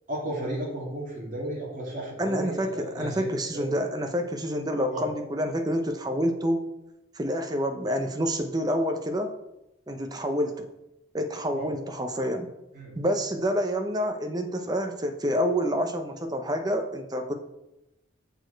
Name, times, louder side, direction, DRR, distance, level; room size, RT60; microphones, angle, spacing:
voice 1, 0.1-3.8 4.9-5.1 11.5-11.7 12.7-13.0, right 1 dB, 40° right, -4 dB, 2.6 m, -34 dB
voice 2, 2.2-6.6 7.1-9.3 9.9-10.7 11.1-12.5 13.0-17.3, equal, 20° right, 5 dB, 0.7 m, -28 dB
6.9 x 6.4 x 4.6 m, 0.91 s
head